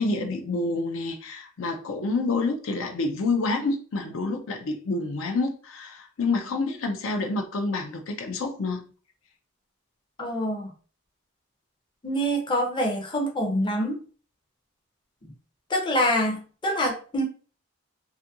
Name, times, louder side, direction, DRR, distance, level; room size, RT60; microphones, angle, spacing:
voice 1, 0.0-8.9, left 3 dB, 70° left, 0.5 m, -28 dB
voice 2, 10.2-10.7 12.0-14.0 15.2-15.3 15.7-17.2, equal, 20° left, 0.5 m, -26 dB
2.6 x 2.4 x 2.6 m
head